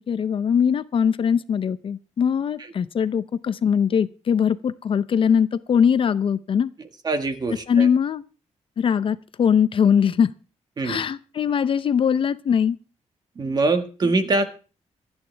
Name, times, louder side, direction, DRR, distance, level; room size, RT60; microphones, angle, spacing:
voice 1, 0.1-6.7 7.7-8.2 8.8-10.3 10.8-12.8, left 7 dB, 45° left, 14 dB, 0.6 m, -21 dB
voice 2, 7.0-7.9 10.8-11.0 13.3-14.4, right 3 dB, 35° right, 8 dB, 1.6 m, -23 dB
26.5 x 9.0 x 3.4 m, 0.36 s
wide cardioid pair, 165°, 12 cm